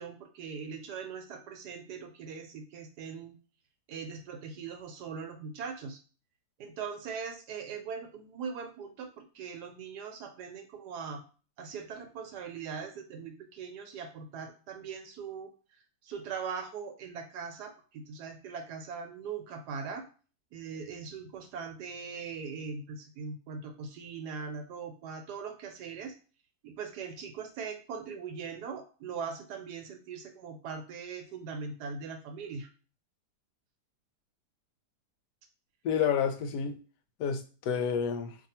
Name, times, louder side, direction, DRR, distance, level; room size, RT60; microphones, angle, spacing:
voice 1, 0.0-3.3 3.9-6.0 6.6-11.2 11.6-15.5 16.0-20.1 20.5-26.1 26.6-32.7, right 5 dB, 75° right, 1.1 m, -40 dB
voice 2, 35.8-36.8 37.2-38.4, left 7 dB, 75° left, 1.1 m, -29 dB
2.6 x 2.6 x 4.1 m
omnidirectional pair, 1.8 m